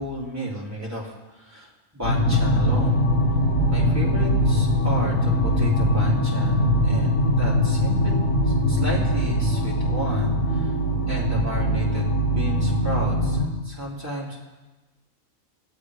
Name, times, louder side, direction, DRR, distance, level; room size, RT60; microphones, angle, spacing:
voice 1, 0.0-3.0 3.7-8.1 8.4-10.7 11.1-14.4, equal, 10° right, -6 dB, 3.3 m, -33 dB
sound 1, 2.0-13.4, equal, 75° left, 3.4 m, -21 dB
19.0 x 7.9 x 4.9 m, 1.1 s
omnidirectional pair, 1.4 m